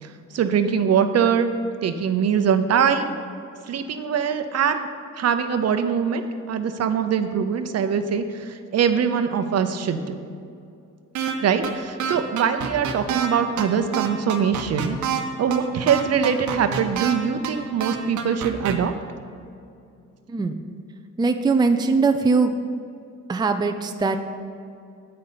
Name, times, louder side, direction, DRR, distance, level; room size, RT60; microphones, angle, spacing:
voice 1, 0.0-1.5 1.8-3.1 3.7-4.9 5.2-6.2 6.5-10.1 11.4-15.0 15.4-18.9, right 7 dB, 55° right, 8 dB, 0.8 m, -22 dB
sound 1, 11.1-11.3 11.6-11.7 12.0-13.3 13.6-13.7 13.9-15.2 15.5-15.6 15.9-17.1 17.4-17.5 17.8-18.7, right 8 dB, 75° right, 1.0 m, -26 dB
voice 2, 20.3-20.6 21.2-22.5 23.3-24.2, right 4 dB, 15° right, 6 dB, 0.5 m, -21 dB
8.8 x 5.5 x 6.8 m, 2.5 s
cardioid pair, 90°, 30 cm